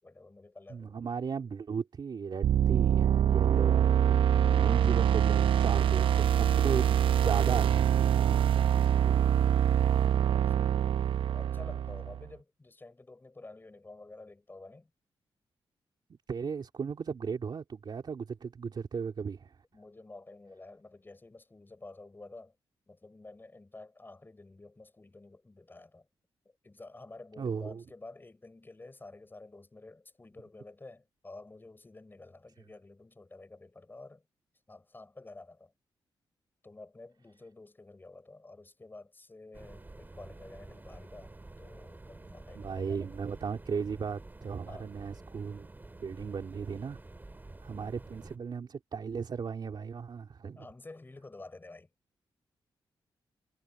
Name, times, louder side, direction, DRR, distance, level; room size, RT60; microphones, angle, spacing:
voice 1, 0.0-1.0 10.3-11.0 11.3-14.9 19.7-22.5 22.9-26.1 26.6-34.2 34.7-35.7 36.6-41.3 41.6-43.2 44.7-44.9 47.7-47.9 50.6-51.9, left 2 dB, 25° left, 5.8 m, -50 dB
voice 2, 0.7-9.7 16.3-19.6 27.4-27.8 42.5-45.7 46.0-47.0 47.6-50.7, right 6 dB, 55° right, 3.0 m, -36 dB
sound 1, 2.4-12.2, right 9 dB, 85° right, 0.7 m, -25 dB
sound 2, 39.5-48.4, right 2 dB, 20° right, 2.5 m, -49 dB
cardioid pair, 80°, 9 cm